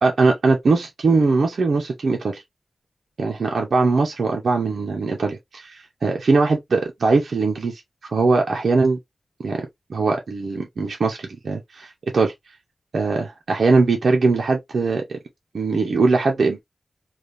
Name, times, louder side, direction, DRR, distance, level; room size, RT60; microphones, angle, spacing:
voice 1, 0.0-2.4 3.2-9.0 9.4-12.3 12.9-15.2 15.5-16.6, right 3 dB, 75° right, 0.6 m, -21 dB
3.3 x 2.3 x 2.5 m
wide cardioid pair, 85°, 0 cm